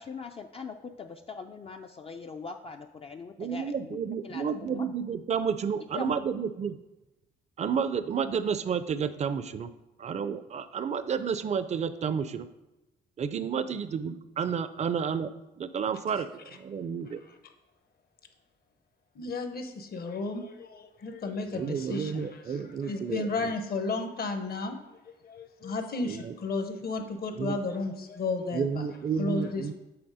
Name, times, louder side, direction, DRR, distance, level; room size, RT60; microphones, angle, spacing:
voice 1, 0.0-4.0 4.2-4.9 5.9-6.1, left 5 dB, 30° left, 4 dB, 0.4 m, -41 dB
voice 2, 3.4-6.8 7.6-9.7 10.0-12.5 13.2-15.3 15.6-17.2 21.5-23.5 26.0-26.3 27.4-27.6 28.5-29.7, right 7 dB, 35° right, 13 dB, 0.4 m, -31 dB
voice 3, 19.1-28.9 29.2-29.7, left 3 dB, 50° left, 7 dB, 0.9 m, -33 dB
7.9 x 3.4 x 4.8 m, 0.99 s
cardioid pair, 90°, 20 cm